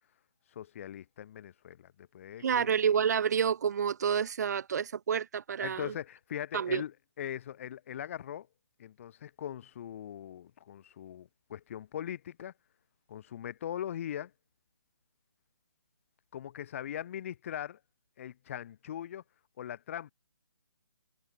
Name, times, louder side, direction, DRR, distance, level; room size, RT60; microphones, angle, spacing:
voice 1, 0.5-2.7 5.6-8.5 8.8-12.5 13.1-14.3 16.3-17.8 18.2-19.2 19.6-20.1, left 10 dB, 35° left, 1.2 m, -40 dB
voice 2, 2.4-5.9 6.5-6.8, right 7 dB, 45° right, 0.5 m, -29 dB
hypercardioid pair, 160°, 12 cm